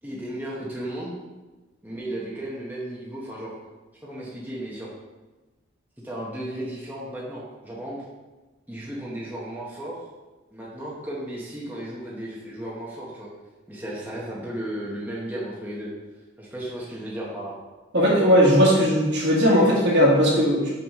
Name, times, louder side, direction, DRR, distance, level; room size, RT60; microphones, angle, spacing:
voice 1, 0.0-1.2 1.8-3.5 4.0-4.9 6.0-8.0 8.7-10.1 10.5-13.3 13.7-15.9 16.4-17.5, right 1 dB, 10° right, -6 dB, 1.0 m, -34 dB
voice 2, 17.9-20.7, equal, 60° right, -4 dB, 1.9 m, -18 dB
6.0 x 6.0 x 3.6 m, 1.2 s
head